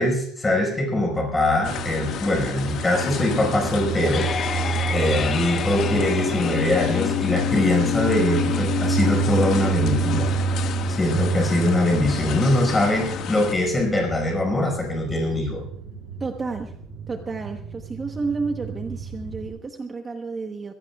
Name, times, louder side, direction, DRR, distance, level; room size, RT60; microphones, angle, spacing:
voice 1, 0.0-4.6 4.9-10.3 10.9-15.6, left 1 dB, 15° left, 1 dB, 4.9 m, -23 dB
sound 1, 1.6-13.5, left 8 dB, 50° left, 1.6 m, -33 dB
sound 2, 1.6-19.5, right 4 dB, 80° right, 6.7 m, -29 dB
sound 3, 3.8-14.8, left 7 dB, 35° left, 1.0 m, -30 dB
voice 2, 16.2-16.7 17.1-20.7, right 4 dB, 20° right, 4 dB, 0.9 m, -31 dB
24.5 x 16.5 x 2.3 m, 0.65 s
cardioid pair, 165°, 0 cm